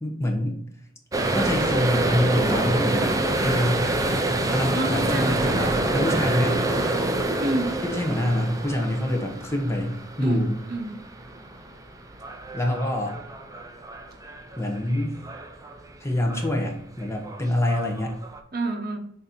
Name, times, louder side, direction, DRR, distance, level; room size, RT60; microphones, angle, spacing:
voice 1, 0.0-0.6 1.3-3.2 3.4-3.9 4.5-6.6 7.8-10.5 12.5-13.2 14.6-15.2 16.0-18.2, left 1 dB, 15° left, 2 dB, 0.8 m, -26 dB
sound 1, 1.1-15.9 16.2-16.7 17.0-18.4, right 2 dB, 20° right, 0.5 m, -27 dB
voice 2, 4.7-6.2 7.4-7.8 10.2-10.9 18.5-19.0, right 1 dB, 50° right, 3 dB, 0.9 m, -29 dB
6.6 x 2.8 x 5.1 m, 0.67 s
head